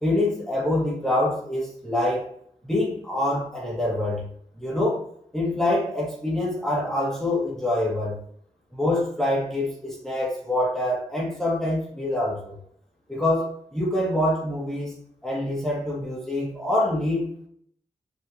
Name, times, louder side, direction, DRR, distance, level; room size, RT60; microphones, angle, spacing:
voice 1, 0.0-2.2 2.6-4.3 4.6-5.0 5.3-8.2 8.7-12.5 13.1-14.9 15.2-17.5, left 1 dB, 5° left, -6 dB, 2.3 m, -25 dB
7.1 x 4.8 x 3.0 m, 0.66 s
wide cardioid pair, 160°, 13 cm